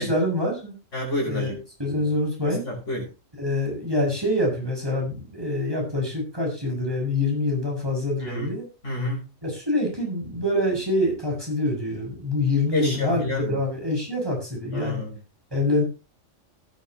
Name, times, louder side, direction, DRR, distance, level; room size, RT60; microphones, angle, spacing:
voice 1, 0.0-0.7 1.3-2.6 3.4-8.7 9.4-15.0 15.5-15.8, left 1 dB, 20° right, 0 dB, 6.8 m, -25 dB
voice 2, 0.9-1.6 2.4-3.1 8.2-8.5 8.8-9.3 12.7-13.6 14.7-15.2, left 1 dB, 65° left, 0 dB, 6.7 m, -29 dB
17.5 x 11.0 x 3.1 m, 0.31 s
omnidirectional pair, 1.3 m